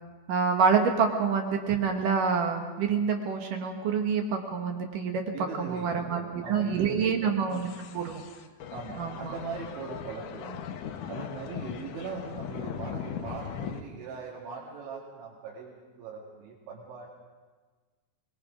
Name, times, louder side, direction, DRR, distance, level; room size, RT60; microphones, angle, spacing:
voice 1, 0.3-6.2 6.5-7.7 7.9-8.2 9.0-9.3, right 6 dB, 60° right, 3 dB, 2.4 m, -27 dB
voice 2, 5.3-7.3 8.7-10.7 11.1-17.1, right 5 dB, 90° right, -3 dB, 4.5 m, -40 dB
sound 1, 7.5-13.8, left 8 dB, 90° left, 1.7 m, -39 dB
24.0 x 21.0 x 5.1 m, 1.4 s
omnidirectional pair, 5.2 m